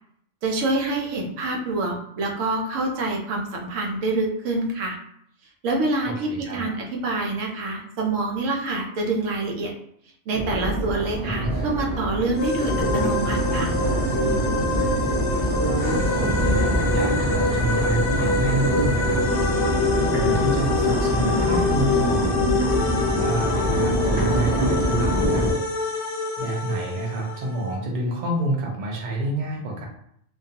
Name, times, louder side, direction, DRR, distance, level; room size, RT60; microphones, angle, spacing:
voice 1, 0.4-5.0 5.6-9.7 10.3-13.7, right 2 dB, 75° right, 0 dB, 0.9 m, -26 dB
voice 2, 6.1-6.6 11.2-11.5 15.6-19.3 19.6-19.7 20.1-25.6 26.4-29.9, right 2 dB, 55° right, -1 dB, 0.5 m, -28 dB
Crowd, 10.3-25.5, right 1 dB, 10° right, 0.6 m, -24 dB
sound 1, 12.4-27.7, left 4 dB, 70° left, 0.9 m, -26 dB
2.4 x 2.2 x 2.7 m, 0.70 s
omnidirectional pair, 1.4 m